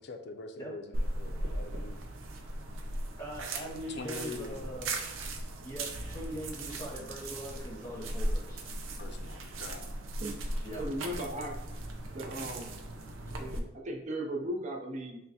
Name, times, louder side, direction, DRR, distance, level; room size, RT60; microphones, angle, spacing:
voice 1, 0.0-2.0 3.9-4.7 9.0-9.9, left 3 dB, 60° left, 6 dB, 0.4 m, -44 dB
voice 2, 0.6-1.0 3.2-4.9 5.6-8.7 10.6-10.8 13.3-13.4, equal, 15° left, -5 dB, 1.3 m, -42 dB
sound 1, 0.9-13.6, right 1 dB, 90° right, 0.5 m, -37 dB
voice 3, 10.7-11.6 12.1-12.8 13.4-15.2, right 1 dB, 40° right, 0 dB, 0.6 m, -37 dB
5.6 x 2.1 x 2.7 m, 0.88 s
head